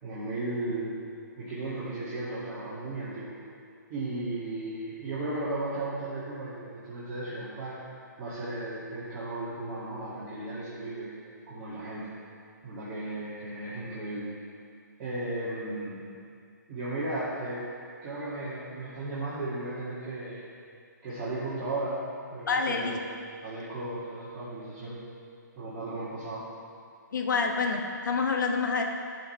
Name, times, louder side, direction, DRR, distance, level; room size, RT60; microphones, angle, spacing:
voice 1, 0.0-1.0 1.4-3.4 3.9-7.8 8.2-11.1 11.5-12.2 12.6-14.4 15.0-16.1 16.7-17.7 18.0-20.5 21.0-22.0 22.3-23.0 23.4-25.0 25.6-26.4, right 2 dB, 25° right, -12 dB, 2.3 m, -35 dB
voice 2, 22.5-22.9 27.1-28.8, left 4 dB, 70° left, 3 dB, 1.2 m, -27 dB
14.0 x 6.3 x 3.3 m, 2.3 s
hypercardioid pair, 150°, 10 cm